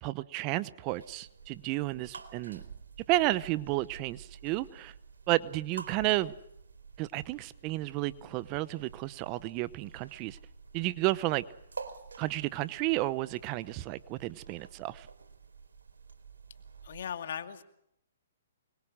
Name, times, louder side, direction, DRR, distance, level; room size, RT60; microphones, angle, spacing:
voice 1, 0.0-2.6 3.1-4.9 5.3-6.3 7.0-10.4 10.7-11.4 12.2-15.1, right 18 dB, 30° right, 17 dB, 0.9 m, -32 dB
sound 1, 0.9-17.0, right 5 dB, 90° right, 4.0 m, -50 dB
Thump thud, 2.5-3.2 5.9-6.4, right 6 dB, 75° right, 1.8 m, -51 dB
voice 2, 16.8-17.6, left 8 dB, 65° left, 8 dB, 2.3 m, -38 dB
24.5 x 22.5 x 6.3 m, 0.77 s
hypercardioid pair, 145°, 0 cm